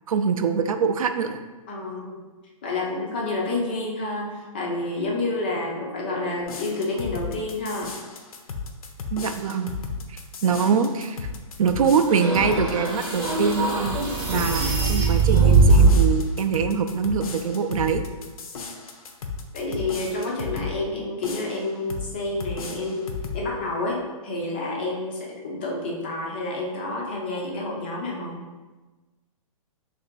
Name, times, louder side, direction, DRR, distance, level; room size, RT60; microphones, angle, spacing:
voice 1, 0.1-1.4 9.1-9.8 10.1-11.3 11.6-18.0, right 6 dB, 75° right, 8 dB, 0.4 m, -24 dB
voice 2, 1.7-2.2 2.6-7.9 19.5-23.1 23.3-28.4, left 2 dB, 20° left, -2 dB, 0.3 m, -29 dB
sound 1, 6.4-20.8 21.2-22.1 22.4-23.4, left 5 dB, 85° left, 0.6 m, -35 dB
sound 2, 12.1-16.1, right 3 dB, 35° right, 0.8 m, -20 dB
3.0 x 2.6 x 4.3 m, 1.2 s
hypercardioid pair, 170°, 18 cm